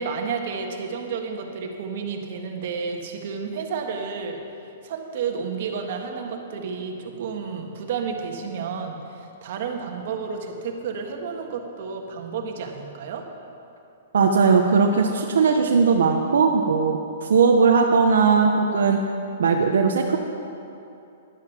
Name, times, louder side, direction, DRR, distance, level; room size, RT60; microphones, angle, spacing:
voice 1, 0.0-4.4 4.8-13.3, right 5 dB, 55° right, 3 dB, 1.6 m, -31 dB
voice 2, 14.1-17.0 17.3-19.0 19.4-20.2, right 5 dB, 85° right, 2 dB, 0.9 m, -18 dB
11.0 x 11.0 x 6.0 m, 2.7 s
hypercardioid pair, 155°, 0 cm